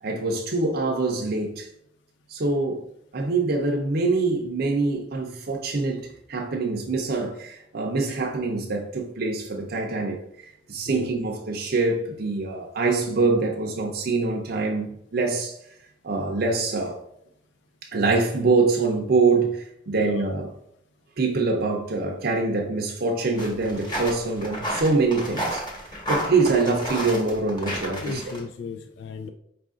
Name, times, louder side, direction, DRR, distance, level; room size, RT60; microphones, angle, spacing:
voice 1, 0.0-1.7 2.3-2.8 3.1-6.0 6.3-15.6 16.0-17.0 17.9-20.5 21.2-25.6 26.1-28.2, right 3 dB, 55° right, 0.6 m, -24 dB
voice 2, 20.0-20.3 27.9-29.3, left 5 dB, 75° left, 0.3 m, -35 dB
sound 1, 23.4-28.4, equal, 25° left, 1.2 m, -31 dB
4.8 x 2.5 x 3.6 m
head